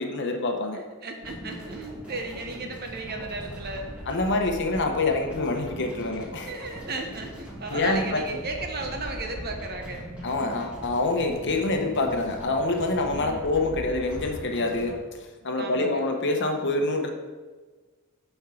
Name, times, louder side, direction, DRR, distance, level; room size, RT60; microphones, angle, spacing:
voice 1, 0.0-0.8 4.1-6.5 7.7-8.2 10.2-15.0 15.4-17.1, left 2 dB, 55° left, 3 dB, 0.9 m, -26 dB
voice 2, 0.7-3.9 6.5-10.1 13.1-13.5 15.6-16.1, right 2 dB, 45° right, 3 dB, 1.0 m, -35 dB
sound 1, 1.2-15.0, equal, 5° right, 2.2 m, -40 dB
11.5 x 4.6 x 3.8 m, 1.3 s
head